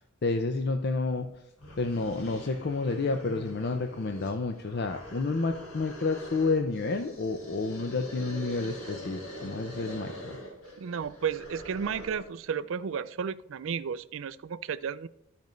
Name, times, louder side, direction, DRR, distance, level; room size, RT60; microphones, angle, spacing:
voice 1, 0.2-1.3 1.8-10.4, left 3 dB, 50° left, 6 dB, 0.5 m, -30 dB
sound 1, 1.2-1.3 1.6-12.4, equal, 75° left, 1.9 m, -44 dB
voice 2, 10.8-15.1, right 7 dB, 65° right, 16 dB, 0.4 m, -33 dB
13.0 x 5.2 x 3.1 m, 0.84 s
head